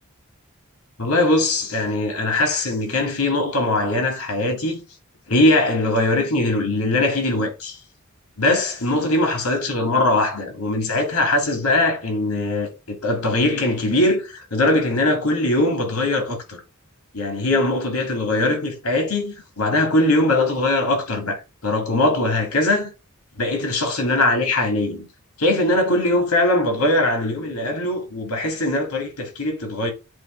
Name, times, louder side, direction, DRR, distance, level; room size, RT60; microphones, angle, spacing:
voice 1, 1.0-4.8 5.3-7.8 8.4-16.6 17.1-22.9 23.4-25.1 25.4-29.9, left 2 dB, 80° left, 2.8 m, -21 dB
8.1 x 3.4 x 4.8 m
head